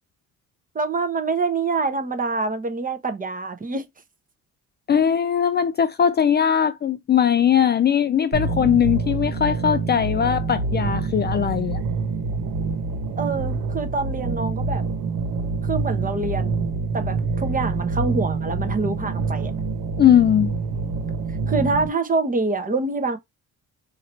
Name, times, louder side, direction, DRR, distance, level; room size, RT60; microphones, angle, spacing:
voice 1, 0.7-3.8 13.2-14.8 15.6-16.7 16.9-19.5 21.5-23.2, right 3 dB, 25° right, 1.0 m, -25 dB
voice 2, 4.9-11.8 20.0-20.5, left 9 dB, 35° left, 0.4 m, -19 dB
sound 1, 8.3-21.9, right 4 dB, 85° right, 1.3 m, -26 dB
2.9 x 2.7 x 4.3 m
cardioid pair, 90°, 30 cm